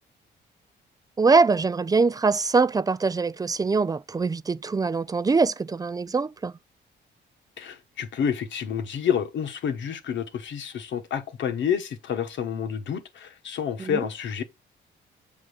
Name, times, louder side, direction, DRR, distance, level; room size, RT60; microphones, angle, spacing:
voice 1, 1.2-6.5 13.8-14.1, right 4 dB, 20° right, 0.3 m, -23 dB
voice 2, 7.6-14.4, left 8 dB, 70° left, 1.2 m, -29 dB
7.5 x 3.7 x 6.5 m
cardioid pair, 90°, 20 cm